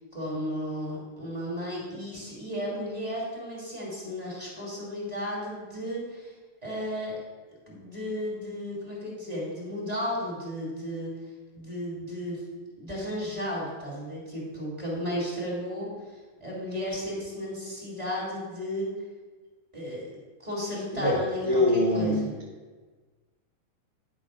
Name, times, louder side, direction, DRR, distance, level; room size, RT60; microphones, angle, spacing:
voice 1, 0.1-6.3 6.6-7.2 7.7-11.1 11.5-12.4 12.8-15.9 16.4-18.9 19.7-20.1 20.4-22.3, equal, 15° right, -5 dB, 2.2 m, -34 dB
voice 2, 20.9-22.2, left 1 dB, 40° left, -5 dB, 0.9 m, -24 dB
10.5 x 4.0 x 6.1 m, 1.4 s
omnidirectional pair, 3.6 m